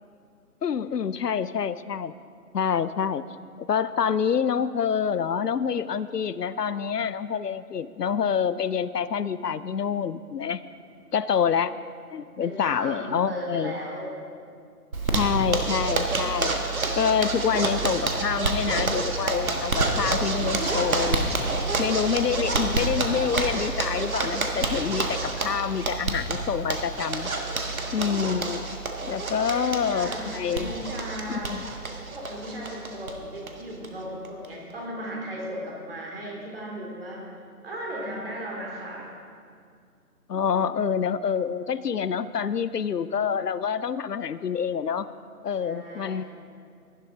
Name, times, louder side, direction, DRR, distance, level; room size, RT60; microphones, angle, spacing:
voice 1, 0.6-2.1 2.5-3.2 3.7-10.6 11.1-11.7 12.1-13.8 15.1-16.6 17.0-21.4 21.8-27.3 27.9-28.7 29.1-30.7 31.3-31.6 40.3-45.1 45.4-46.2, left 7 dB, 80° left, 15 dB, 0.6 m, -27 dB
voice 2, 12.4-14.1 29.3-31.5 32.1-37.2 37.6-39.1 45.6-46.2, equal, 35° right, -2 dB, 2.7 m, -36 dB
Zipper (clothing), 14.9-33.1 33.4-33.5 33.8-33.9 34.2-34.7, right 3 dB, 60° right, 1.6 m, -28 dB
17.0 x 11.0 x 3.8 m, 2.3 s
figure-of-eight pair, 155°, 48 cm